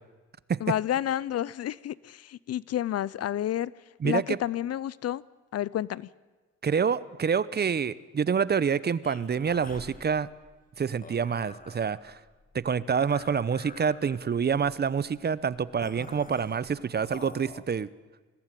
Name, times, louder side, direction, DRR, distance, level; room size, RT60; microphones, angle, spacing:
voice 1, 0.6-3.7 4.0-5.2 5.5-6.1, left 11 dB, 55° left, 22 dB, 0.6 m, -30 dB
voice 2, 4.0-4.4 6.6-10.3 10.8-12.2 12.5-17.9, right 6 dB, 35° right, 18 dB, 0.8 m, -27 dB
sound 1, 9.0-17.6, left 3 dB, 25° left, 2.0 m, -48 dB
21.0 x 16.5 x 9.1 m, 1.3 s
cardioid pair, 90°, 30 cm